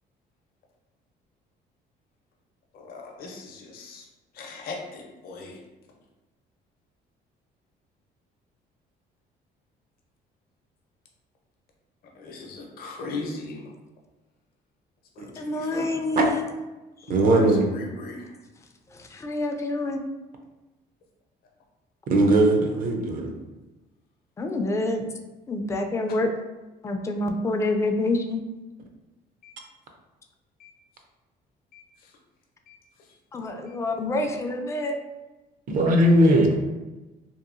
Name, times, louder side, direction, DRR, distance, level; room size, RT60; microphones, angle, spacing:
voice 1, 2.7-4.1 4.3-5.6 12.2-13.6 15.2-15.9 17.1-18.3 26.1-26.2 29.4-29.5 30.6-30.7 31.7-32.1 32.7-32.8 33.7-33.8, left 3 dB, 60° left, 0 dB, 0.6 m, -38 dB
voice 2, 15.4-16.5 18.9-20.0 24.4-25.1 25.5-26.3 26.8-28.4 33.3-35.0, left 2 dB, 15° left, 4 dB, 0.3 m, -27 dB
voice 3, 17.1-17.7 22.1-23.3 35.7-36.5, right 1 dB, 55° right, 3 dB, 0.5 m, -19 dB
2.8 x 2.3 x 2.5 m, 1.1 s
cardioid pair, 110°, 17 cm